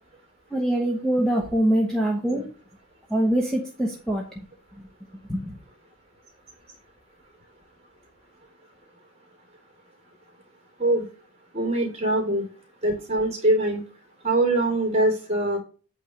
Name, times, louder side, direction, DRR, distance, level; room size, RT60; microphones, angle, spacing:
voice 1, 0.5-2.4 3.1-4.5 4.8-4.9 5.3-5.6, right 1 dB, 5° left, -1 dB, 0.9 m, -24 dB
voice 2, 11.5-12.4 12.8-13.8 14.2-15.6, right 1 dB, 25° right, 1 dB, 2.8 m, -23 dB
8.5 x 3.2 x 6.4 m, 0.38 s
head